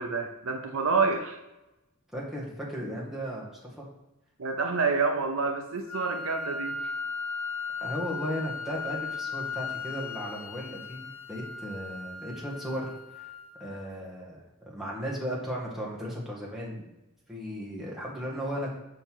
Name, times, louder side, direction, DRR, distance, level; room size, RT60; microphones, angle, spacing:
voice 1, 0.0-1.4 4.4-6.8, right 4 dB, 60° right, 5 dB, 0.6 m, -28 dB
voice 2, 2.1-3.9 7.8-13.3 13.6-16.8 17.3-18.7, equal, ahead, -5 dB, 1.6 m, -36 dB
Wind instrument woodwind instrument, 5.9-13.8, left 4 dB, 75° left, 0.8 m, -37 dB
5.8 x 5.4 x 4.6 m, 0.95 s
head